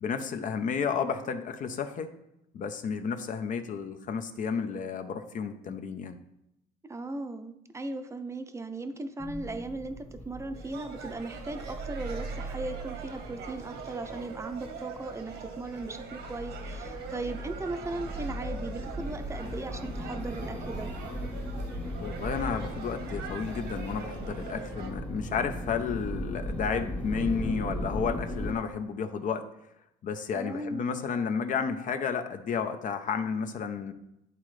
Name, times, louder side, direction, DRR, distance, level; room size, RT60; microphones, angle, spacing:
voice 1, 0.0-2.1 2.5-6.2 22.0-29.5 30.0-33.9, left 6 dB, 50° left, 8 dB, 0.7 m, -32 dB
voice 2, 6.9-20.9 30.3-31.0, right 2 dB, 15° right, 7 dB, 0.6 m, -37 dB
sound 1, 9.2-28.5, equal, 10° left, 1.0 m, -38 dB
sound 2, 10.5-24.9, right 5 dB, 80° right, 1.3 m, -43 dB
11.0 x 3.7 x 3.2 m, 0.83 s
cardioid pair, 110°, 17 cm